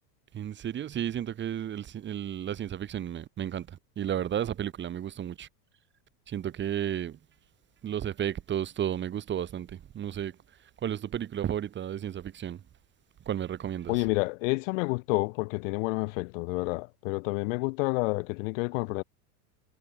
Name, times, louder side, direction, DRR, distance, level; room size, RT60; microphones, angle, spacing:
voice 1, 0.3-5.5 6.3-7.2 7.8-10.4 10.8-12.6 13.3-14.0, right 10 dB, 25° right, 1.9 m, -33 dB
voice 2, 13.9-19.0, left 27 dB, 55° left, 0.8 m, -29 dB
supercardioid pair, 140°, 45 cm